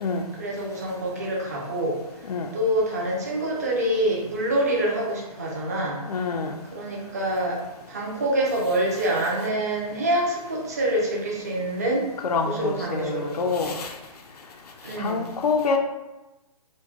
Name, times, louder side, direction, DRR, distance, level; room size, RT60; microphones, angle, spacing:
voice 1, 0.4-1.9 2.5-6.0 6.7-7.6 7.9-12.0 12.5-13.8 14.8-15.2, right 1 dB, 25° right, -3 dB, 0.5 m, -26 dB
voice 2, 6.1-6.5 12.2-14.0 15.0-15.8, left 4 dB, 80° left, 4 dB, 0.4 m, -26 dB
4.4 x 2.1 x 2.8 m, 1.0 s
hypercardioid pair, 175°, 19 cm